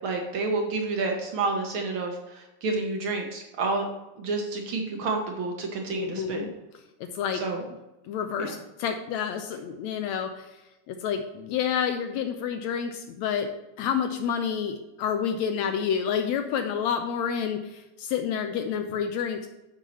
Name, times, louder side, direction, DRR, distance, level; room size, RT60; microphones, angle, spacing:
voice 1, 0.0-3.9 4.2-6.5 7.3-7.6 8.4-8.5, right 3 dB, 60° right, 2 dB, 1.4 m, -29 dB
voice 2, 5.9-6.5 7.0-7.4 8.0-10.6 10.9-13.5 13.8-19.5, left 7 dB, 85° left, 6 dB, 1.6 m, -29 dB
13.0 x 5.4 x 3.1 m, 1.0 s
omnidirectional pair, 3.8 m